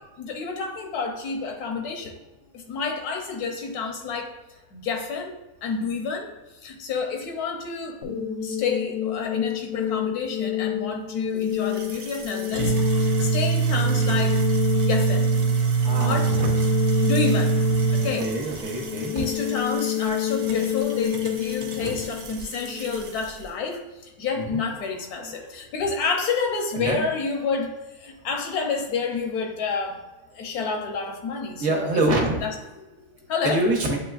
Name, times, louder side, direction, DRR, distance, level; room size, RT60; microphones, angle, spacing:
voice 1, 0.2-2.1 2.5-4.3 4.7-6.3 6.6-8.0 8.4-12.7 13.0-14.4 14.7-15.3 16.0-16.5 17.0-17.5 17.9-18.3 19.1-30.0 30.3-32.5 33.3-33.6, left 4 dB, 85° left, 3 dB, 1.2 m, -29 dB
sound 1, 8.0-23.0, left 13 dB, 65° left, 0.8 m, -29 dB
sound 2, 11.4-23.4, right 6 dB, 85° right, 1.2 m, -25 dB
voice 2, 15.8-16.5 18.2-19.3 21.8-22.0 24.4-24.6 25.2-25.5 26.7-27.0 31.6-32.4 33.4-34.0, right 2 dB, 60° right, 0 dB, 1.1 m, -26 dB
7.5 x 3.0 x 2.4 m, 1.1 s
omnidirectional pair, 1.6 m